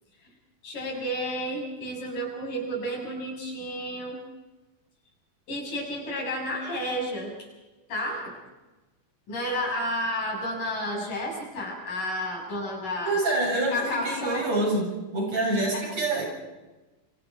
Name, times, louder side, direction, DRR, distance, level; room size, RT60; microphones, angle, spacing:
voice 1, 0.6-4.2 5.5-7.5 7.9-8.3 9.3-13.2 13.7-14.5 15.7-15.8, equal, 80° left, -1 dB, 8.5 m, -31 dB
voice 2, 13.0-14.8 15.1-16.3, right 2 dB, 50° right, -1 dB, 8.9 m, -26 dB
28.0 x 26.0 x 4.7 m, 1.1 s
omnidirectional pair, 3.7 m